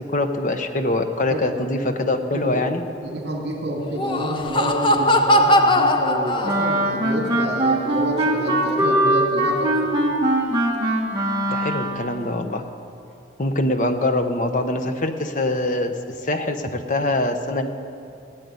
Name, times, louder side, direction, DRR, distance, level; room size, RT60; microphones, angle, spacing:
voice 1, 0.1-2.8 11.5-12.6 13.4-17.7, left 2 dB, 45° left, 7 dB, 0.9 m, -23 dB
voice 2, 3.0-9.9, equal, 65° right, -2 dB, 2.3 m, -28 dB
Laughter, 3.8-7.0, left 1 dB, 25° left, 0.6 m, -19 dB
Wind instrument woodwind instrument, 6.4-12.1, right 1 dB, 25° right, 1.7 m, -21 dB
16.5 x 7.9 x 9.6 m, 2.7 s
head